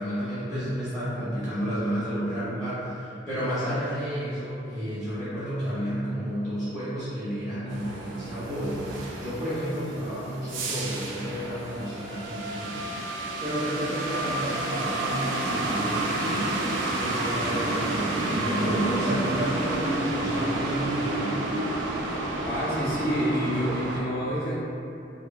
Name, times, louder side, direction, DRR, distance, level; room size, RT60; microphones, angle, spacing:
voice 1, 0.0-8.9 9.2-13.0 13.4-16.6 17.0-21.5, equal, ahead, -13 dB, 0.5 m, -31 dB
sound 1, 7.7-24.0, right 2 dB, 80° right, 0.3 m, -30 dB
voice 2, 22.4-24.5, equal, 50° left, -8 dB, 0.5 m, -27 dB
2.6 x 2.1 x 2.2 m, 2.7 s
head